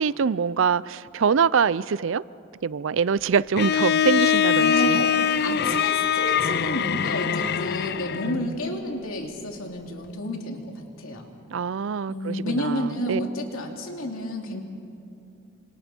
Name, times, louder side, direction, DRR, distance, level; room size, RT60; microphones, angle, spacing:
voice 1, 0.0-2.2 2.6-5.0 8.2-8.5 11.5-13.2, right 6 dB, 65° right, 0.4 m, -24 dB
Bowed string instrument, 3.6-8.4, left 8 dB, 50° left, 0.5 m, -23 dB
voice 2, 4.5-10.7 11.0-11.3 12.1-14.6, left 1 dB, 80° left, 2.9 m, -30 dB
29.0 x 26.0 x 4.5 m
head